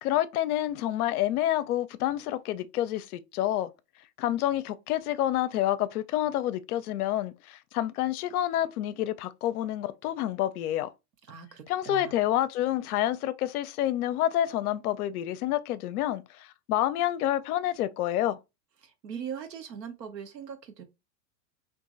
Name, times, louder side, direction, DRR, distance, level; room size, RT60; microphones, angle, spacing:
voice 1, 0.0-3.7 4.2-10.9 11.7-18.4, left 13 dB, 65° left, 0.5 m, -28 dB
voice 2, 11.3-12.1 18.8-20.8, right 7 dB, 80° right, 0.8 m, -40 dB
3.0 x 2.5 x 2.4 m
hypercardioid pair, 95°, 49 cm